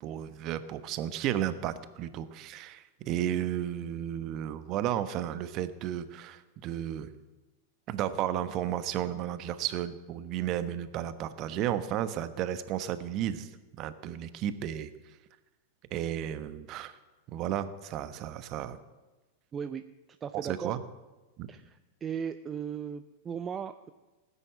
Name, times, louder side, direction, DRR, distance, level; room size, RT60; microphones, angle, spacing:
voice 1, 0.0-7.1 7.9-13.5 13.8-14.9 15.9-17.0 17.3-18.8 20.4-20.8 21.4-21.5, right 11 dB, 40° right, 12 dB, 1.1 m, -33 dB
voice 2, 19.5-19.8 20.2-20.7 21.5-23.9, right 7 dB, 25° right, 10 dB, 0.6 m, -37 dB
18.5 x 9.8 x 7.7 m, 1.2 s
figure-of-eight pair, 90°, 0 cm